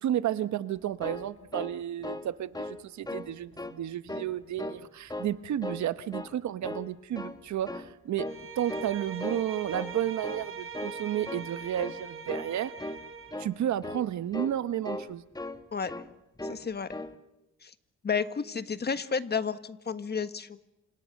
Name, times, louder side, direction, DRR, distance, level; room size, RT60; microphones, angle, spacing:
voice 1, 0.0-8.3 8.6-12.7 13.4-15.2, right 11 dB, 70° right, 13 dB, 1.2 m, -32 dB
sound 1, 0.8-2.3 2.5-2.8 3.0-3.7 4.1-4.8 5.1-5.8 6.1-6.4 6.6-7.4 7.7-7.9 8.2-8.4 8.7-9.4 9.7-9.9 10.2-10.5 10.7-11.0 11.2-11.5 11.8-12.0 12.3-12.5 12.8-13.0 13.3-13.5 13.8-14.1 14.3-14.6 14.8-15.6 15.9-16.1 16.4-16.6 16.9-17.1, left 2 dB, 15° left, 1.7 m, -37 dB
Bowed string instrument, 8.2-13.4, right 5 dB, 45° right, 5.8 m, -42 dB
voice 2, 16.4-16.9 17.6-17.7 18.0-20.6, left 6 dB, 35° left, 11 dB, 1.5 m, -31 dB
29.0 x 27.0 x 6.6 m, 0.97 s
cardioid pair, 90°, 30 cm